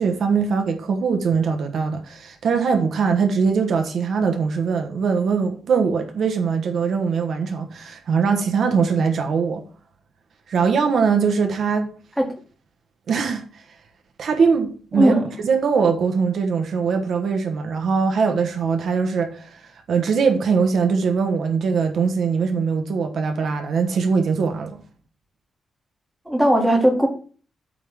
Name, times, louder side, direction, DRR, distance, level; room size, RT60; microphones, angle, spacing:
voice 1, 0.0-9.6 10.5-11.9 13.1-13.4 14.2-19.6 19.9-24.8, right 5 dB, 60° right, 1.2 m, -21 dB
voice 2, 14.9-15.2 26.2-27.1, right 1 dB, ahead, 1.7 m, -17 dB
8.4 x 3.6 x 6.8 m
wide cardioid pair, 170°, 0 cm